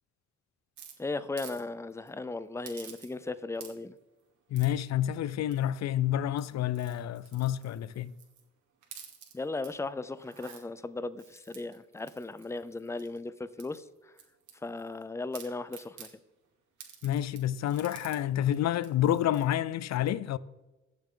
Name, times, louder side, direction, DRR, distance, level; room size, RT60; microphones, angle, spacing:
sound 1, 0.8-1.6 1.9-2.1 2.6-3.3 3.5-4.0 4.5-4.9 5.5-5.9 6.3-8.4 8.8-9.7 10.1-10.6 11.2-13.2 13.6-15.0 15.3-16.1 16.8-18.2 18.5-18.6 18.8-19.5, right 8 dB, 75° right, 2.4 m, -51 dB
voice 1, 1.0-3.9 9.3-14.1 14.6-16.1, left 3 dB, 10° left, 0.5 m, -37 dB
voice 2, 4.5-8.1 17.0-20.4, left 12 dB, 60° left, 0.5 m, -29 dB
16.5 x 7.0 x 3.9 m
cardioid pair, 90°, 30 cm